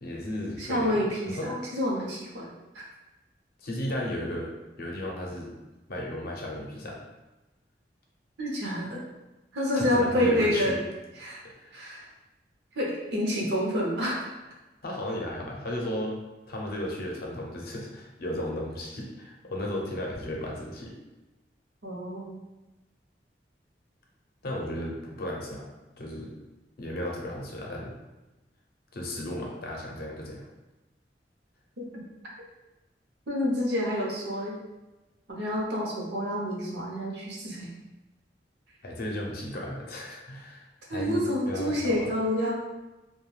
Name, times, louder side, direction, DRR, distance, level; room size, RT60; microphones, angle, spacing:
voice 1, 0.0-1.5 3.6-4.5 4.8-5.6 5.9-7.0 9.7-10.8 11.4-11.7 14.8-16.2 16.5-21.0 24.4-25.7 26.0-26.3 26.8-28.0 28.9-30.5 38.8-42.1, left 1 dB, 60° left, -1 dB, 0.6 m, -35 dB
voice 2, 0.6-2.8 8.4-9.0 9.5-10.8 11.2-11.4 11.7-12.0 12.8-14.3 21.8-22.4 31.8-31.9 33.3-34.6 35.3-37.7 40.9-42.5, equal, 75° right, -3 dB, 0.7 m, -28 dB
2.3 x 2.2 x 3.1 m, 1.1 s
head